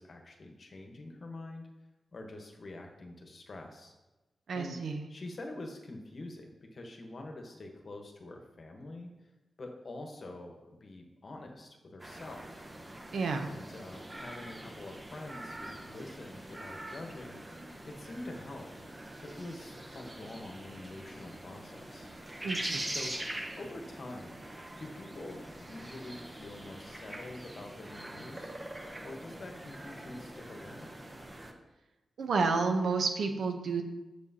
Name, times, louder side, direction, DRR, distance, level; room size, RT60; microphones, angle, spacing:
voice 1, 0.0-1.7 2.1-3.9 4.5-4.8 5.1-9.3 9.6-12.6 13.4-18.7 19.2-22.1 22.9-24.4 24.8-28.6 29.0-30.9, left 2 dB, 50° left, 2 dB, 1.1 m, -46 dB
voice 2, 4.5-5.0 13.1-13.5 22.4-22.9 32.2-33.8, right 4 dB, 80° right, 5 dB, 0.7 m, -30 dB
sound 1, 12.0-31.5, right 1 dB, 20° right, 0.8 m, -44 dB
7.4 x 6.5 x 2.8 m, 1.1 s
wide cardioid pair, 90°, 0 cm